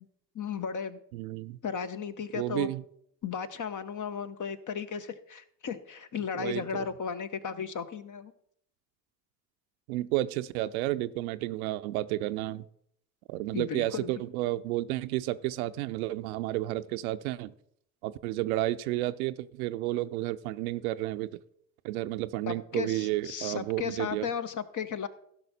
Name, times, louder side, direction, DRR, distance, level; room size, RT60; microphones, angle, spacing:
voice 1, 0.3-1.0 1.6-2.7 3.2-8.3 13.5-14.1 22.5-25.1, left 7 dB, 45° left, 12 dB, 1.0 m, -35 dB
voice 2, 1.1-1.6 2.3-2.8 6.3-6.9 9.9-12.6 13.3-17.5 18.0-21.3 21.8-24.3, right 16 dB, 80° right, 12 dB, 0.5 m, -31 dB
15.5 x 6.0 x 4.3 m, 0.72 s
hypercardioid pair, 45°, 43 cm